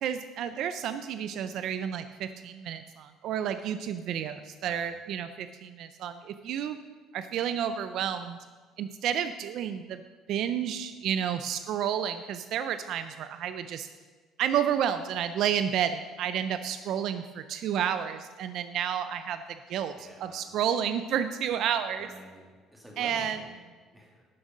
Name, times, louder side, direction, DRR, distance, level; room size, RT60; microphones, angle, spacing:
voice 1, 0.0-6.8 7.1-8.4 8.8-10.0 10.3-13.9 14.4-22.1 23.0-23.4, right 9 dB, 65° right, 10 dB, 0.4 m, -31 dB
voice 2, 20.0-20.4 22.0-23.7 23.9-24.3, equal, 5° right, -2 dB, 2.3 m, -49 dB
11.5 x 6.4 x 5.1 m, 1.4 s
cardioid pair, 115°, 0 cm